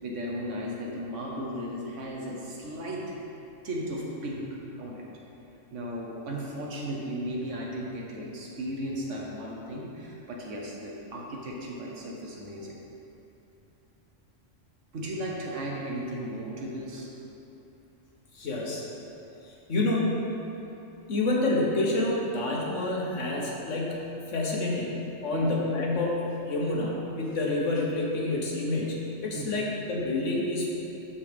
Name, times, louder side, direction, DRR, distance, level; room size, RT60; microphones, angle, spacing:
voice 1, 0.0-3.0 3.6-4.4 4.8-5.1 5.7-12.8 14.9-17.1 25.3-25.5 29.3-29.5, equal, 75° right, -3 dB, 1.4 m, -35 dB
voice 2, 18.3-18.8 19.7-20.2 21.1-25.0 25.2-30.7, left 2 dB, 75° left, -3 dB, 1.5 m, -28 dB
12.5 x 4.3 x 3.5 m, 3.0 s
omnidirectional pair, 1.3 m